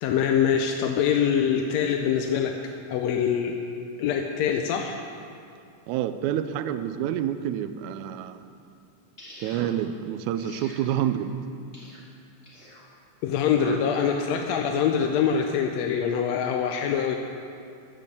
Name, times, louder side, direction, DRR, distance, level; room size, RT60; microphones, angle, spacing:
voice 1, 0.0-3.6 4.0-5.0 13.2-17.2, left 7 dB, 80° left, 4 dB, 1.6 m, -24 dB
voice 2, 5.9-8.4 9.4-11.4 13.6-13.8, right 10 dB, 80° right, 11 dB, 1.9 m, -28 dB
sound 1, 9.2-9.7 10.4-10.8 11.7-12.0 12.4-12.8 13.7-14.2, left 1 dB, 25° left, 2.1 m, -46 dB
15.0 x 5.3 x 6.7 m, 2.4 s
omnidirectional pair, 3.5 m